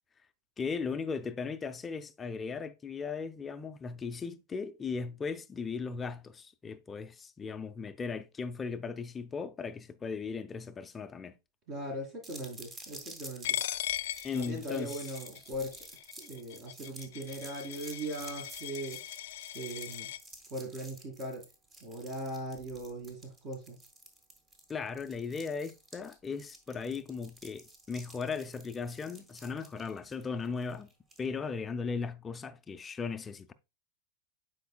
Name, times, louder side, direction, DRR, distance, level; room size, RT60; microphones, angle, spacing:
voice 1, 0.6-11.3 14.2-15.0 24.7-30.9 31.2-33.5, left 5 dB, 20° left, 0.4 m, -37 dB
voice 2, 11.7-13.6 14.3-15.8 16.2-19.0 19.5-20.1 20.5-21.4 21.8-23.8, right 1 dB, 40° right, 2.2 m, -39 dB
sound 1, 12.2-31.3, right 2 dB, 25° right, 1.6 m, -51 dB
Coin (dropping), 13.4-20.2, left 12 dB, 80° left, 0.4 m, -39 dB
9.1 x 4.5 x 2.3 m
supercardioid pair, 125°, 0 cm